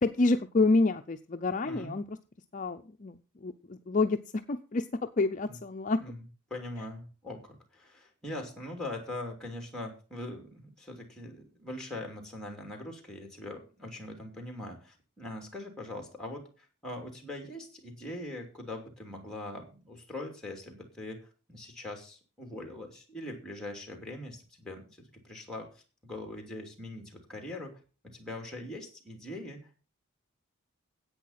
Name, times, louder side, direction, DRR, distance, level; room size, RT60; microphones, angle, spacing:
voice 1, 0.0-2.2 2.5-4.9 5.2-6.0, left 3 dB, 35° left, 7 dB, 0.5 m, -28 dB
voice 2, 1.6-2.0 5.5-5.6 6.0-6.2 6.5-27.8 28.1-29.8, left 1 dB, 5° left, 3 dB, 2.7 m, -42 dB
10.0 x 8.5 x 5.7 m, 0.35 s
head